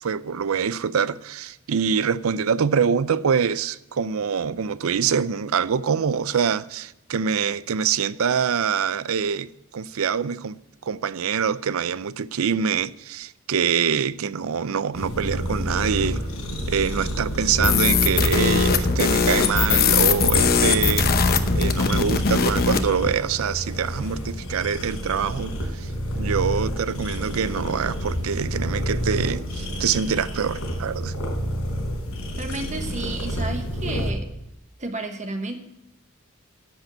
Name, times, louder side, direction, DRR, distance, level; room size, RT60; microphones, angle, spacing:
voice 1, 0.0-16.2 16.7-21.1 21.5-25.9 26.1-31.1, right 6 dB, 80° right, 0.5 m, -25 dB
sound 1, 14.9-34.1, equal, 85° left, 3.9 m, -29 dB
sound 2, 17.6-22.9, left 5 dB, 45° left, 0.9 m, -20 dB
voice 2, 32.4-34.3 34.8-35.7, right 2 dB, 35° right, 1.1 m, -32 dB
10.5 x 7.9 x 9.2 m
head